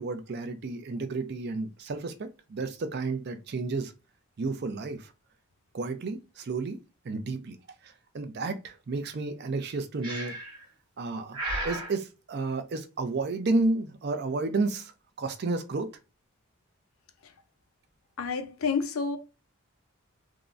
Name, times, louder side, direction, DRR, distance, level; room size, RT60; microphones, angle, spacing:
voice 1, 0.0-3.9 4.4-5.1 5.7-6.8 7.0-7.6 7.8-10.4 11.0-11.4 11.6-14.9 15.2-15.9, right 3 dB, 45° right, 0.4 m, -31 dB
Breathing, 10.0-10.6 11.3-11.9, right 1 dB, 20° right, 1.0 m, -34 dB
voice 2, 18.2-19.2, left 5 dB, 70° left, 0.5 m, -29 dB
3.6 x 2.0 x 2.4 m
head